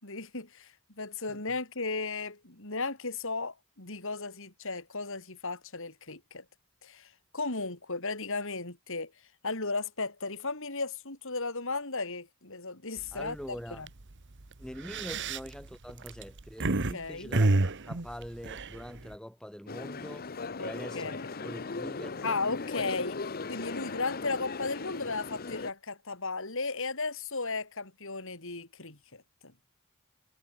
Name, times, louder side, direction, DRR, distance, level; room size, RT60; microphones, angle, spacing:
voice 1, 0.0-6.4 6.8-9.1 9.4-13.4 13.7-13.9 16.9-17.3 20.6-21.3 22.2-29.5, left 3 dB, 60° left, 5.4 m, -35 dB
sound 1, 13.0-13.3 13.7-13.9 14.6-16.9 17.3-19.1, right 2 dB, 55° right, 1.3 m, -28 dB
voice 2, 13.1-13.9 14.6-20.3 20.6-22.4, equal, 5° left, 1.9 m, -44 dB
sound 2, 19.7-25.7, left 4 dB, 45° left, 0.9 m, -38 dB
head